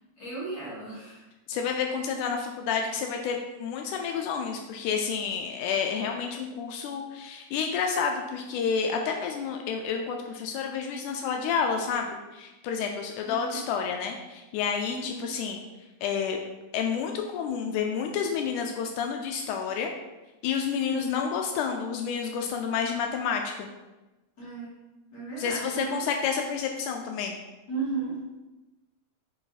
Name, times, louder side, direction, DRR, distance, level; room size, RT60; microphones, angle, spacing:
voice 1, 0.2-1.2 13.2-13.6 14.9-15.3 20.9-21.1 24.4-24.7 25.1-25.9 27.7-28.2, right 4 dB, 35° left, -9 dB, 2.5 m, -35 dB
voice 2, 1.5-15.6 16.0-16.4 16.7-19.9 20.4-23.7 25.4-27.4, left 6 dB, 80° left, 3 dB, 2.0 m, -30 dB
6.8 x 4.1 x 4.1 m, 1.1 s
omnidirectional pair, 3.7 m